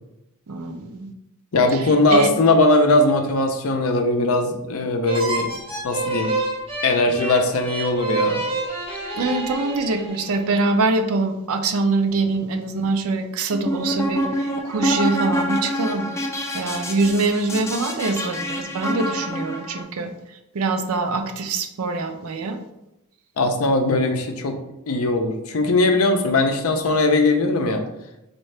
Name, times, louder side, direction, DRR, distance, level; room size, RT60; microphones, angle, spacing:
voice 1, 0.5-1.1 1.7-2.3 9.1-16.1 16.5-22.6, right 3 dB, 70° right, 7 dB, 0.5 m, -24 dB
voice 2, 1.5-5.5 5.8-6.4 6.8-8.4 23.4-24.6 24.9-27.8, left 2 dB, 70° left, 4 dB, 0.6 m, -19 dB
sound 1, 5.0-10.6, right 3 dB, 25° right, 0.9 m, -28 dB
sound 2, 13.5-19.8, equal, 10° left, 0.4 m, -26 dB
4.3 x 2.7 x 3.2 m, 0.90 s
head